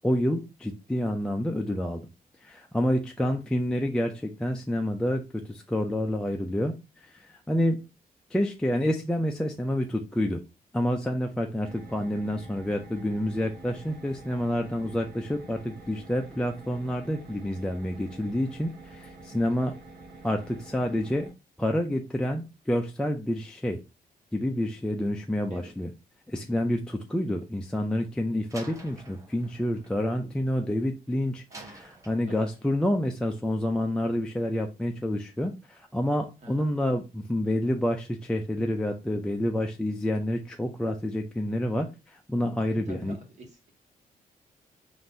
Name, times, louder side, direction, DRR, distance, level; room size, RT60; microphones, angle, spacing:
voice 1, 0.0-2.1 2.4-6.8 7.0-7.9 8.3-10.4 10.7-19.8 20.2-21.3 21.6-23.8 24.3-25.9 26.3-43.2, left 1 dB, 5° left, 0.4 m, -28 dB
sound 1, 11.6-21.3, right 3 dB, 85° right, 1.0 m, -47 dB
voice 2, 19.4-19.8 25.5-25.7 31.5-31.8 32.2-32.5 36.4-36.7 42.7-43.7, equal, 50° right, 1.2 m, -46 dB
Slam, 28.5-30.9 31.5-32.7, right 2 dB, 20° right, 0.8 m, -49 dB
3.8 x 2.6 x 3.8 m
cardioid pair, 135°, 15 cm